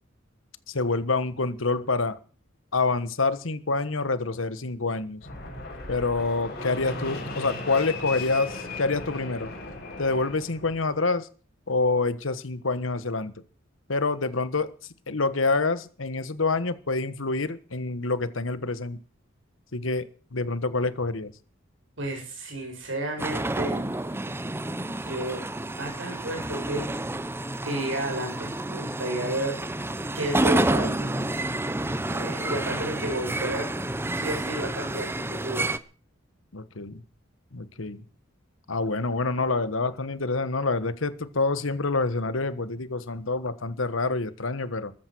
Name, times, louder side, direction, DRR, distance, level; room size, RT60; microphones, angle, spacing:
voice 1, 0.7-2.2 2.7-5.3 5.9-9.5 10.0-11.3 11.7-13.4 13.9-14.7 15.1-19.0 19.7-21.3 32.4-32.8 36.5-37.0 37.5-38.0 38.7-44.9, left 3 dB, 85° left, 14 dB, 1.4 m, -27 dB
Fixed-wing aircraft airplane, 5.2-10.8, left 3 dB, 55° left, 6.5 m, -36 dB
voice 2, 22.0-23.8 24.8-25.4 25.8-26.9 27.6-29.6 30.1-31.3 32.1-33.7 34.1-35.7, right 1 dB, 70° right, 3 dB, 7.4 m, -32 dB
sound 1, 23.2-35.8, right 1 dB, 10° right, 0.8 m, -29 dB
14.5 x 13.0 x 6.3 m, 0.40 s
head